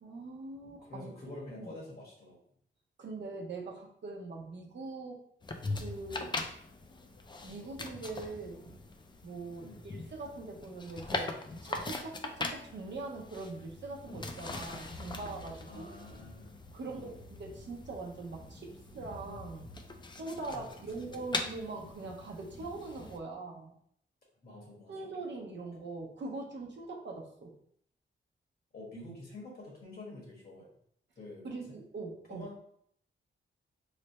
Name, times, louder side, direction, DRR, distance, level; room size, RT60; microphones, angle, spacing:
voice 1, 0.0-1.1 1.6-1.7 3.0-5.2 5.8-6.3 7.4-8.6 9.2-11.3 11.6-15.9 16.7-19.7 20.2-23.7 24.9-27.5 31.4-32.5, right 3 dB, 60° right, 0 dB, 0.7 m, -42 dB
voice 2, 0.9-2.4 9.6-9.9 15.7-17.2 20.5-21.1 24.4-25.1 28.7-30.7 31.2-31.8 32.3-32.6, left 2 dB, 50° left, -3 dB, 1.4 m, -48 dB
sound 1, 5.4-23.2, left 3 dB, 25° left, 0.3 m, -42 dB
3.2 x 2.1 x 4.1 m, 0.67 s
wide cardioid pair, 120°, 21 cm